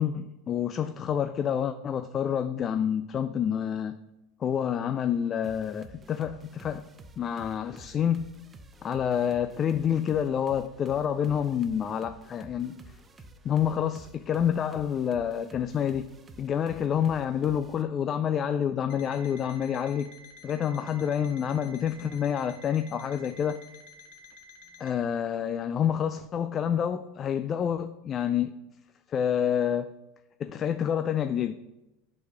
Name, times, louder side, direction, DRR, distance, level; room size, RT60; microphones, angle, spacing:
voice 1, 0.0-3.9 4.4-6.9 7.2-8.3 8.8-12.8 13.4-16.1 16.4-20.1 20.4-23.6 24.8-28.5 29.1-29.9 30.4-31.6, left 8 dB, 35° left, 0.3 m, -28 dB
sound 1, 5.4-17.8, right 2 dB, 20° right, 0.6 m, -51 dB
Alarm, 18.9-25.0, left 3 dB, 70° left, 0.9 m, -51 dB
5.9 x 4.1 x 5.8 m
supercardioid pair, 110°, 0 cm